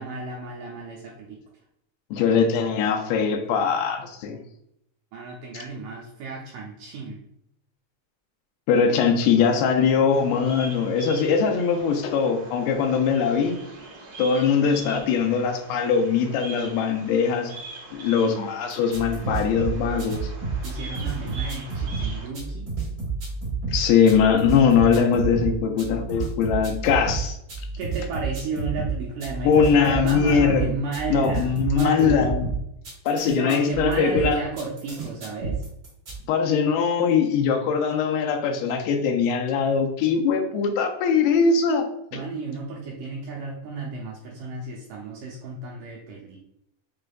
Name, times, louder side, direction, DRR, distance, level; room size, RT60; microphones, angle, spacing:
voice 1, 0.0-1.4 5.1-7.2 20.6-22.7 27.8-32.3 33.3-35.7 42.1-46.4, right 4 dB, 85° right, -3 dB, 1.9 m, -32 dB
voice 2, 2.1-4.4 8.7-13.6 14.2-17.5 17.9-20.3 23.7-27.4 29.4-30.7 31.1-32.5 33.1-34.4 36.3-41.9 42.1-42.2, left 6 dB, 85° left, 4 dB, 2.6 m, -21 dB
Bird vocalization bird call bird song, 10.1-22.3, right 3 dB, 60° right, 2.2 m, -42 dB
sound 1, 18.7-36.2, right 4 dB, 40° right, 1.5 m, -30 dB
6.5 x 3.3 x 2.3 m, 0.77 s
omnidirectional pair, 4.4 m